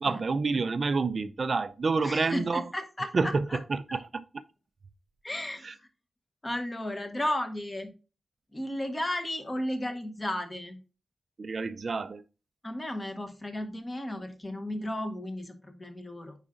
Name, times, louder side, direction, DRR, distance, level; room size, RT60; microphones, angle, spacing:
voice 1, 0.0-2.6 3.1-4.4 5.6-5.7 11.4-12.2, right 4 dB, 45° right, 0.4 m, -28 dB
voice 2, 2.0-3.6 5.2-5.9 6.4-7.9 8.5-10.8 12.6-16.4, left 1 dB, 20° left, 0.9 m, -34 dB
8.9 x 4.8 x 2.5 m
wide cardioid pair, 165°, 0 cm